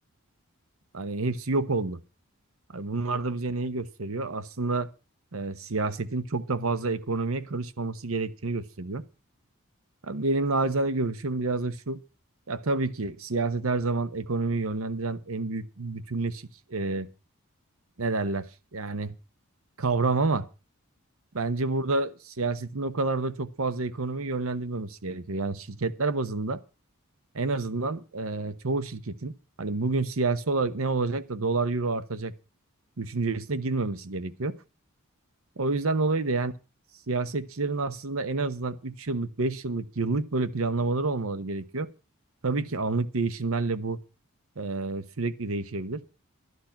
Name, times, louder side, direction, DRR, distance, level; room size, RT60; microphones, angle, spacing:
voice 1, 0.9-2.0 2.7-4.9 5.3-9.0 10.0-12.0 12.5-17.1 18.0-18.5 18.7-19.1 19.8-20.5 21.3-26.6 27.3-29.3 29.6-32.3 33.0-34.6 35.6-36.5 37.1-41.9 42.4-44.0 44.6-46.0, right 3 dB, 70° right, 0.9 m, -29 dB
12.0 x 11.0 x 5.8 m
head